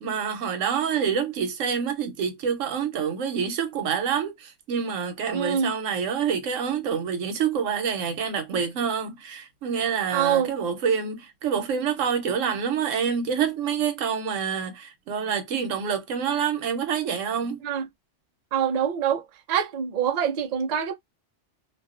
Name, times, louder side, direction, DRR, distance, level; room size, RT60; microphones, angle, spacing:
voice 1, 0.0-17.6, right 7 dB, 90° right, 1.1 m, -27 dB
voice 2, 5.3-5.7 10.1-10.5 17.6-17.9 18.5-20.9, right 8 dB, 55° right, 0.4 m, -25 dB
2.4 x 2.3 x 2.3 m
omnidirectional pair, 1.3 m